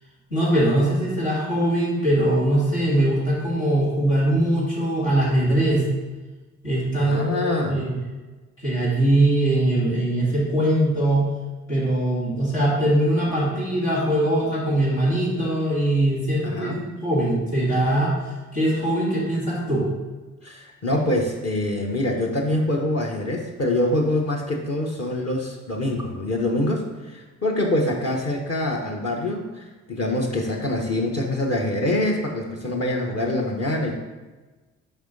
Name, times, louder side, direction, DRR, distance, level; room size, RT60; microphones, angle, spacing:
voice 1, 0.3-5.8 6.6-7.2 7.7-7.9 8.6-11.3 11.7-19.9, right 1 dB, 80° left, -9 dB, 2.0 m, -21 dB
voice 2, 7.0-7.8 16.4-16.8 20.4-34.0, left 1 dB, 40° left, -1 dB, 0.9 m, -25 dB
5.3 x 5.3 x 3.8 m, 1.2 s
hypercardioid pair, 40°, 37 cm